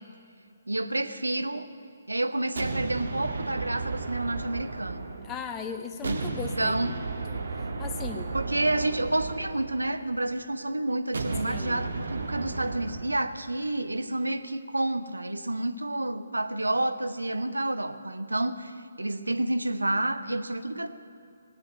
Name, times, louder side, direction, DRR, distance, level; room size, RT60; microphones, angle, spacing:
voice 1, 0.7-1.7 2.1-5.1 6.0-6.3 6.6-6.9 8.3-20.9, right 1 dB, 80° right, 10 dB, 0.8 m, -29 dB
sound 1, 2.6-5.6 6.0-10.3 11.1-13.2, right 3 dB, 60° right, 1.9 m, -34 dB
voice 2, 5.2-7.0 7.3-7.4 7.8-8.3 11.4-11.9, left 6 dB, 15° left, 7 dB, 0.9 m, -37 dB
17.5 x 8.6 x 8.9 m, 2.5 s
figure-of-eight pair, 140°, 0 cm